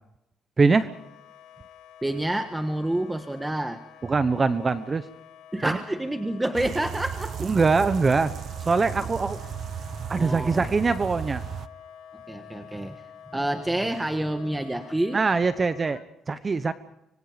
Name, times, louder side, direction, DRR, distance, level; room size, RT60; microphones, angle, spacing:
voice 1, 0.6-0.9 4.0-5.1 5.7-5.8 7.4-8.3 8.7-9.4 10.1-11.4 15.1-16.7, right 4 dB, 30° right, 12 dB, 1.1 m, -23 dB
Wind instrument woodwind instrument, 0.8-16.0, left 9 dB, 90° left, 2.2 m, -48 dB
voice 2, 2.0-3.8 5.5-7.5 10.1-10.6 12.3-13.0 13.3-15.2, right 1 dB, 10° right, 7 dB, 1.5 m, -28 dB
sound 1, 6.5-11.7, right 8 dB, 60° right, 1.0 m, -35 dB
26.0 x 23.0 x 5.2 m, 0.85 s
cardioid pair, 90°, 0 cm